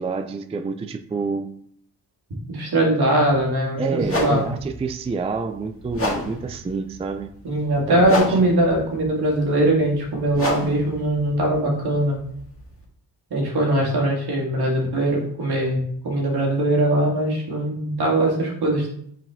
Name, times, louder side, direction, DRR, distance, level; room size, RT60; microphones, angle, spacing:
voice 1, 0.0-1.5 3.8-7.3 7.9-8.4, right 4 dB, 15° right, 7 dB, 0.3 m, -28 dB
voice 2, 2.5-4.4 7.4-12.2 13.3-18.9, right 1 dB, 65° right, -2 dB, 2.3 m, -21 dB
sound 1, 3.2-3.4 4.0-12.8, left 1 dB, 35° left, 1.9 m, -31 dB
5.7 x 4.8 x 3.6 m, 0.67 s
cardioid pair, 85°, 41 cm